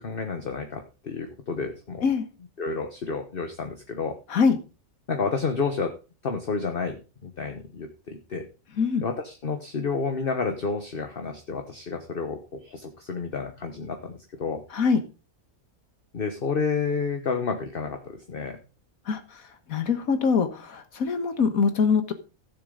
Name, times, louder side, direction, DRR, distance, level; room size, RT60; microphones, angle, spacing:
voice 1, 0.0-2.1 2.6-4.2 5.1-6.0 6.2-8.4 9.0-14.6 16.1-18.6, left 4 dB, 45° left, 5 dB, 1.3 m, -30 dB
voice 2, 19.7-22.1, left 5 dB, 85° left, 8 dB, 1.8 m, -23 dB
16.0 x 7.0 x 3.9 m, 0.32 s
omnidirectional pair, 1.4 m